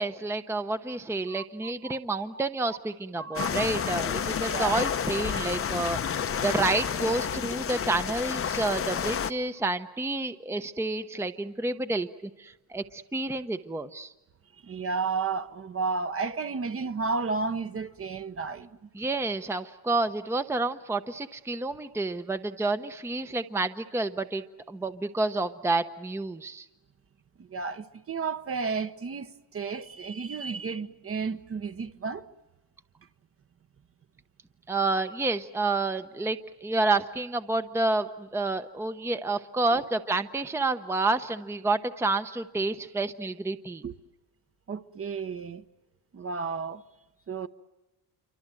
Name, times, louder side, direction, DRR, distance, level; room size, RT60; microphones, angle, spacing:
voice 1, 0.0-12.1 12.4-14.1 18.9-26.7 34.7-43.8, right 2 dB, 5° right, 0.8 m, -29 dB
voice 2, 1.3-2.0 2.3-2.4 3.2-5.0 5.3-5.7 6.0-6.1 14.6-18.7 27.4-32.3 43.8-43.9 44.7-45.6 46.1-46.8 47.3-47.5, right 4 dB, 35° right, 1.1 m, -33 dB
sound 1, 3.4-9.3, left 8 dB, 35° left, 0.8 m, -30 dB
27.5 x 25.0 x 7.7 m
cardioid pair, 105°, 41 cm